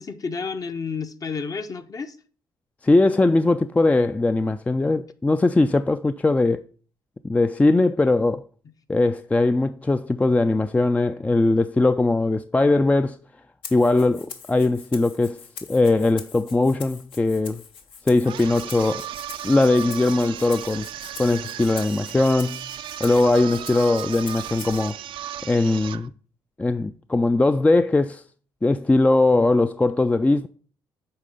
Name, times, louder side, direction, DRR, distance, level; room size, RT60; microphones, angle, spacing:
voice 1, 0.0-2.2, left 5 dB, 40° left, 0.8 m, -31 dB
voice 2, 2.8-6.6 7.2-8.4 8.9-13.2 13.7-15.4 15.7-17.6 18.1-19.1 19.4-20.9 21.2-22.7 23.0-25.0 25.4-26.1 26.6-28.2 28.6-30.5, left 2 dB, 15° left, 0.3 m, -20 dB
Rattle (instrument), 13.6-24.9, left 6 dB, 70° left, 0.9 m, -43 dB
sound 1, 18.2-26.1, right 11 dB, 65° right, 0.4 m, -35 dB
8.6 x 3.3 x 5.3 m
supercardioid pair, 60°, 9 cm